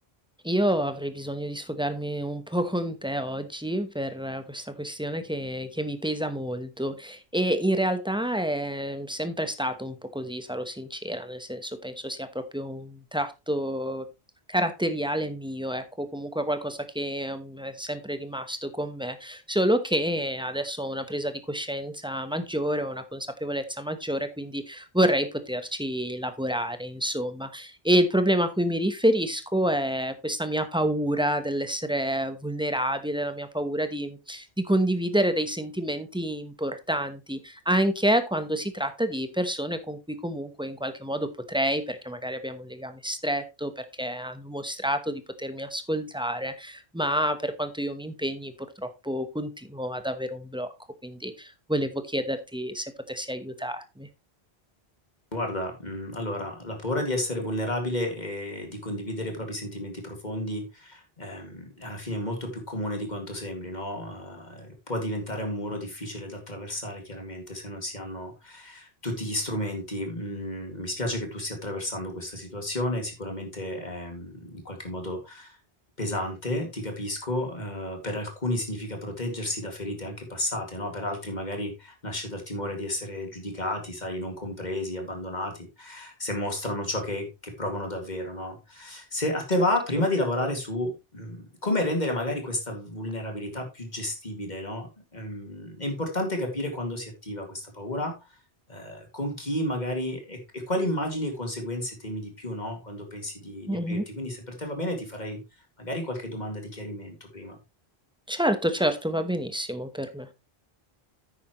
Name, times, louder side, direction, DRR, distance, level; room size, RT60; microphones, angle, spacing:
voice 1, 0.4-14.1 14.5-50.7 51.0-54.1 103.7-104.0 108.3-110.3, right 1 dB, 5° right, 9 dB, 0.9 m, -28 dB
voice 2, 55.3-75.6 76.0-98.2 98.7-105.4 105.8-107.6, left 1 dB, 45° left, 3 dB, 2.4 m, -32 dB
9.9 x 8.5 x 3.0 m, 0.25 s
omnidirectional pair, 1.0 m